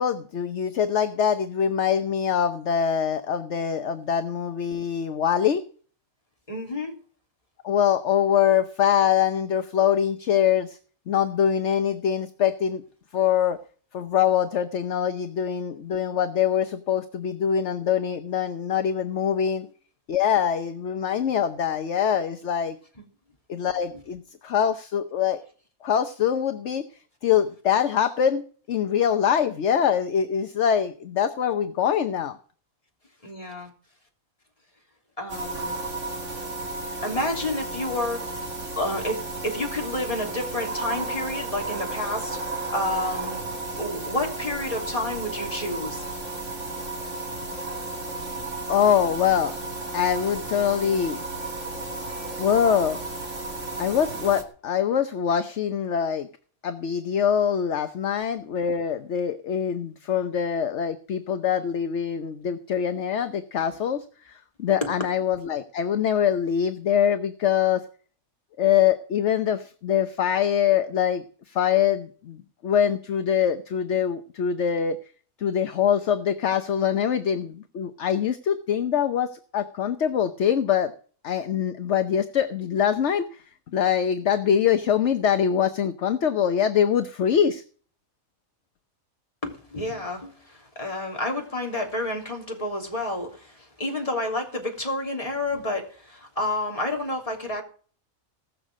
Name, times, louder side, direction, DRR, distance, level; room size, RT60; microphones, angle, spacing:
voice 1, 0.0-5.6 7.6-10.8 11.1-12.8 13.1-13.6 13.9-19.7 20.1-22.8 23.5-25.4 25.8-26.8 27.2-28.4 28.7-32.4 48.7-49.5 49.9-51.2 52.4-53.0 53.8-56.3 56.6-67.8 68.6-75.0 75.4-80.9 81.2-83.4 83.7-87.6, left 8 dB, 60° left, 9 dB, 1.1 m, -24 dB
voice 2, 6.5-6.9 23.9-24.0 33.2-33.7 35.2-35.8 37.0-38.4 38.8-42.4 42.7-43.4 43.8-46.0 64.8-64.9 89.4-97.6, left 1 dB, 25° left, 1 dB, 3.2 m, -30 dB
sound 1, 35.3-54.4, right 2 dB, 55° right, 2.8 m, -33 dB
19.0 x 6.7 x 7.4 m, 0.43 s
omnidirectional pair, 1.5 m